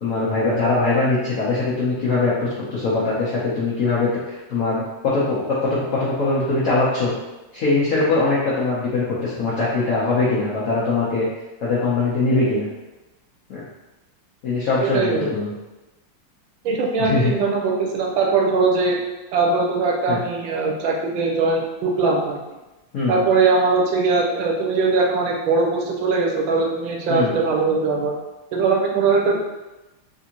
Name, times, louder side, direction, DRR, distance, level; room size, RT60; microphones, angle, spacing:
voice 1, 0.0-5.4 5.7-7.1 7.5-11.3 11.6-12.7 13.5-13.6 14.4-15.5 17.0-17.3 20.1-20.2 22.9-23.2 27.1-27.3, left 3 dB, 65° left, -9 dB, 0.9 m, -21 dB
voice 2, 14.8-15.3 16.6-19.0 19.3-22.4 23.1-28.1 28.5-29.4, right 4 dB, 75° right, 1 dB, 1.3 m, -20 dB
3.5 x 2.6 x 2.8 m, 1.0 s
omnidirectional pair, 2.3 m